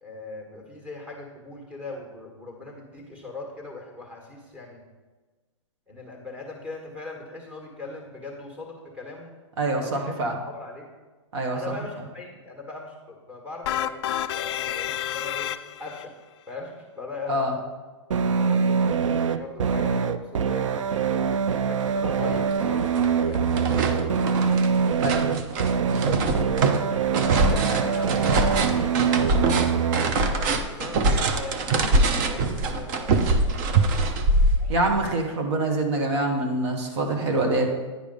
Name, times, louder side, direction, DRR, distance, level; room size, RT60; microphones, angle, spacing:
voice 1, 0.0-4.8 5.9-9.3 9.7-10.2 10.4-10.9 11.5-15.5 15.8-16.1 16.5-17.5 18.3-21.4 21.6-24.1 26.4-28.9 30.2-34.0, left 3 dB, 10° right, -1 dB, 1.6 m, -40 dB
voice 2, 9.6-10.4 11.3-11.7 17.3-17.6 25.0-25.3 34.7-37.7, right 2 dB, 60° right, 2 dB, 1.5 m, -25 dB
sound 1, 13.7-16.0, left 11 dB, 55° left, 0.4 m, -29 dB
sound 2, 18.1-30.1, right 6 dB, 80° right, 0.6 m, -24 dB
sound 3, 21.9-22.0 22.3-23.1 23.3-35.0, right 2 dB, 40° right, 0.8 m, -24 dB
10.0 x 4.9 x 5.4 m, 1.3 s
hypercardioid pair, 130°, 16 cm